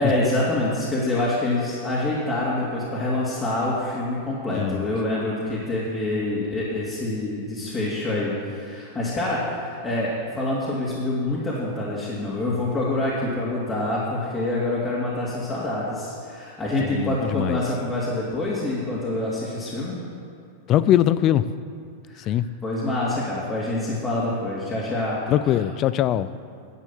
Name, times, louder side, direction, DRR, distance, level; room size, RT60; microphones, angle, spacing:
voice 1, 0.0-20.0 22.0-22.3 22.6-25.6, left 2 dB, 20° left, -8 dB, 2.7 m, -26 dB
voice 2, 4.5-4.9 16.8-17.6 20.7-21.4 22.3-22.5 25.3-26.3, left 12 dB, 40° left, 15 dB, 0.5 m, -21 dB
11.0 x 7.3 x 7.3 m, 2.4 s
hypercardioid pair, 105°, 0 cm